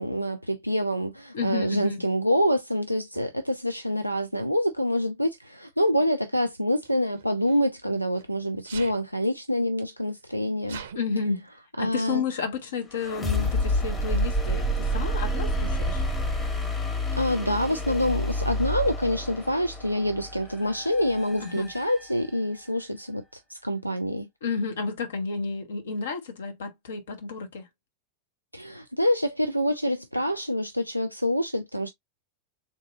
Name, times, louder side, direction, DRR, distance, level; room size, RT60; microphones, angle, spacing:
voice 1, 0.0-10.8 11.8-12.2 17.2-23.2 23.5-24.3 28.5-31.9, equal, 90° left, 0.3 m, -26 dB
voice 2, 1.3-2.0 10.9-11.5 11.8-16.0 21.4-21.7 24.4-27.7, left 4 dB, 65° left, 0.9 m, -31 dB
Sneeze, 3.1-3.3 4.4-4.7 6.8-8.3 8.6-9.0 9.8-9.9 10.1-11.0, right 7 dB, 60° right, 0.5 m, -43 dB
sound 1, 12.9-22.7, left 1 dB, 15° left, 1.1 m, -29 dB
3.6 x 2.6 x 2.5 m
figure-of-eight pair, 90°, 0 cm